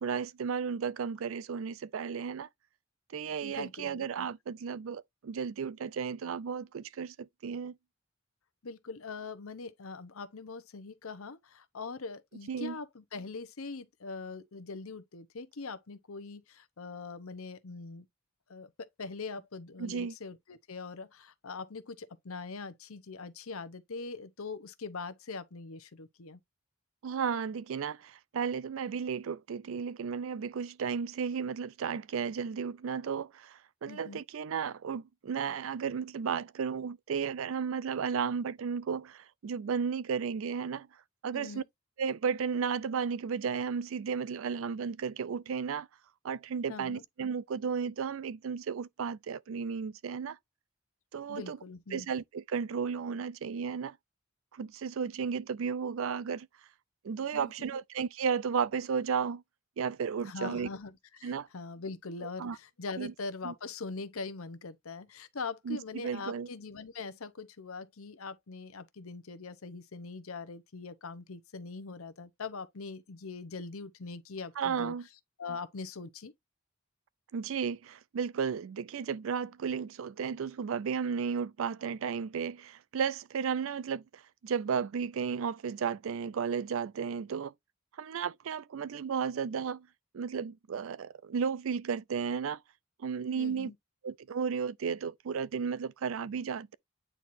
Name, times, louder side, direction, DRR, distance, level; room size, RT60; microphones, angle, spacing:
voice 1, 0.0-2.5 3.1-7.7 12.5-12.8 19.8-20.1 27.0-40.9 41.2-41.6 42.0-45.9 46.2-50.4 51.1-51.6 51.9-54.0 54.5-56.5 57.0-59.4 59.8-60.7 61.2-61.5 62.4-62.6 63.0-63.1 63.4-63.5 65.7-66.5 74.6-75.1 77.3-87.5 88.0-89.9 90.1-92.6 93.0-93.7 94.0-96.7, right 6 dB, 65° right, 0.4 m, -34 dB
voice 2, 3.4-4.3 8.6-18.0 18.5-26.4 33.9-34.2 41.3-41.6 46.7-47.0 51.3-52.1 57.3-57.5 60.2-74.9 75.4-76.3 93.4-93.7, left 4 dB, 75° left, 0.8 m, -42 dB
9.1 x 4.2 x 2.6 m
head